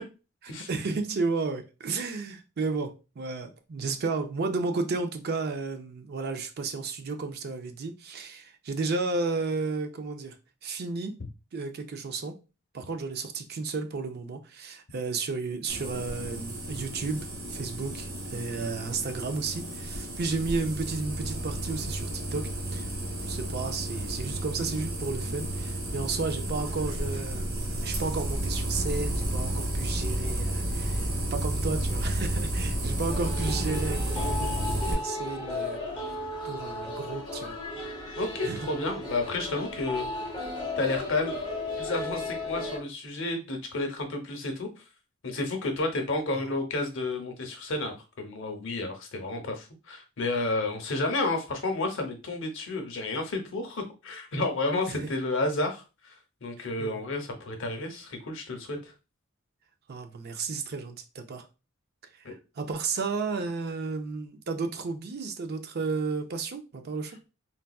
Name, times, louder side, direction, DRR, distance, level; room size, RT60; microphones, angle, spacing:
voice 1, 0.7-10.4 10.6-11.2 11.5-12.3 12.7-22.9 23.2-35.8 36.4-37.5 38.4-38.7 46.3-46.5 54.9-55.1 56.6-57.0 59.9-61.5 62.1-67.1, right 4 dB, 50° right, 0.5 m, -33 dB
sound 1, 15.7-34.9, right 1 dB, 75° right, 1.2 m, -32 dB
sound 2, 33.1-42.8, left 2 dB, 20° left, 0.7 m, -35 dB
voice 2, 38.2-40.1 40.8-41.4 41.8-44.7 45.2-56.1 56.4-58.9 62.2-62.3, left 2 dB, 65° left, 0.7 m, -31 dB
3.9 x 2.3 x 2.3 m
head